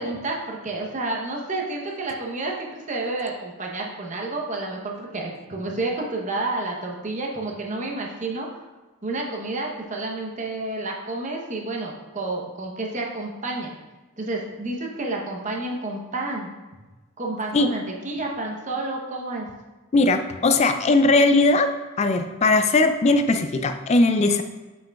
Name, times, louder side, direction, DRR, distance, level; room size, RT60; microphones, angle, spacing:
voice 1, 0.0-8.5 9.0-13.7 14.2-16.5 17.2-19.5, right 2 dB, 35° right, 0 dB, 0.8 m, -30 dB
voice 2, 19.9-24.4, left 2 dB, 30° left, 8 dB, 0.3 m, -19 dB
7.4 x 5.9 x 2.3 m, 1.2 s
head